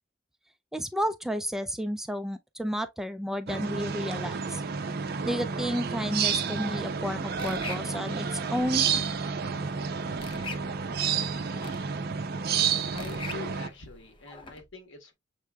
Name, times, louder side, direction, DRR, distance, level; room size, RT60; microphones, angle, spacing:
voice 1, 0.7-4.6 5.2-8.9, equal, ahead, 0.3 m, -31 dB
sound 1, 3.5-13.7, right 6 dB, 50° right, 0.6 m, -30 dB
sound 2, 6.6-14.6, left 3 dB, 25° left, 0.7 m, -45 dB
voice 2, 12.9-15.1, left 4 dB, 75° left, 1.3 m, -44 dB
6.5 x 3.3 x 2.3 m
head